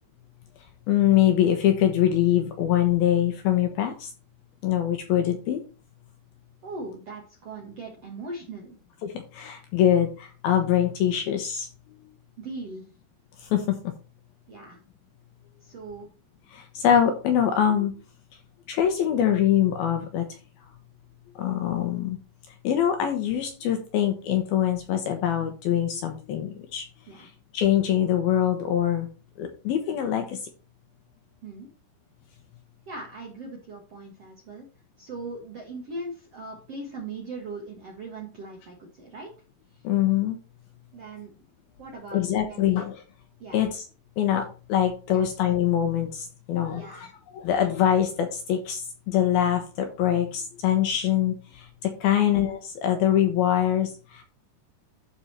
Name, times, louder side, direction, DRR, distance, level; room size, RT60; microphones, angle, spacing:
voice 1, 0.9-4.1 4.6-5.6 9.0-12.0 13.4-13.8 16.5-17.9 18.7-20.3 21.4-22.2 22.6-26.9 27.1-29.1 29.4-30.5 39.8-40.4 42.1-43.0 43.5-43.9 44.2-54.2, left 10 dB, 70° left, 5 dB, 2.5 m, -24 dB
voice 2, 6.6-8.8 12.4-12.9 14.5-14.8 15.6-16.1 27.1-27.3 31.4-31.7 32.9-34.7 35.0-39.3 39.7-39.8 40.9-41.3 41.8-42.2 42.5-42.8 43.4-43.7 45.1-45.3 46.7-47.1 52.1-52.3, right 2 dB, 60° right, 0 dB, 1.7 m, -39 dB
12.5 x 4.4 x 4.3 m, 0.35 s
omnidirectional pair, 5.3 m